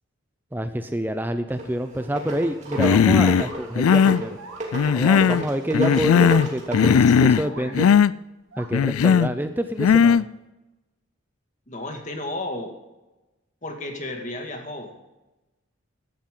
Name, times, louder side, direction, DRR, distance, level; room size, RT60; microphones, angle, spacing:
voice 1, 0.5-4.4 4.9-7.9 8.6-10.3, equal, 10° right, 9 dB, 0.5 m, -28 dB
sound 1, 1.5-7.0, right 1 dB, 35° right, 3.1 m, -31 dB
sound 2, 2.7-5.2 5.7-5.8 6.2-6.3 7.4-7.8 8.5-8.8, right 4 dB, 75° right, 1.9 m, -44 dB
Human voice, 2.8-3.5 3.7-4.2 4.7-5.4 5.7-6.5 6.7-7.5 7.7-8.1 8.7-9.3 9.8-10.2, left 7 dB, 85° left, 0.4 m, -17 dB
voice 2, 7.0-7.9 11.7-12.7 13.6-14.9, left 1 dB, 35° left, 3 dB, 2.1 m, -33 dB
16.0 x 12.0 x 3.8 m, 1.0 s
head